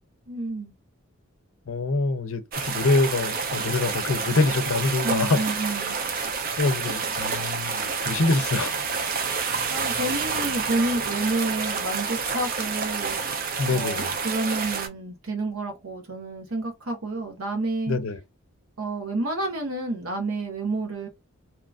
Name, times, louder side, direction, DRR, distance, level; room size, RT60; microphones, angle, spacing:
voice 1, 0.3-0.7 5.0-6.0 9.7-13.2 13.7-18.0 18.8-21.1, right 2 dB, 80° right, 1.1 m, -29 dB
voice 2, 1.7-5.5 6.6-8.7 13.6-14.1 17.9-18.2, left 3 dB, 70° left, 0.5 m, -25 dB
sound 1, 2.5-14.9, right 5 dB, 40° right, 0.5 m, -28 dB
2.8 x 2.5 x 2.3 m
head